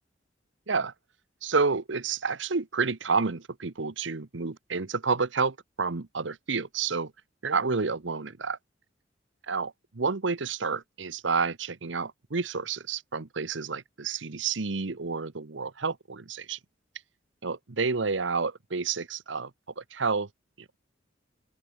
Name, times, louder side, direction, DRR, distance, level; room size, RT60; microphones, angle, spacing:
voice 1, 1.4-7.1 7.4-8.6 9.5-16.6 17.4-19.5 19.8-20.3, right 4 dB, 75° right, 1.0 m, -29 dB
open air
head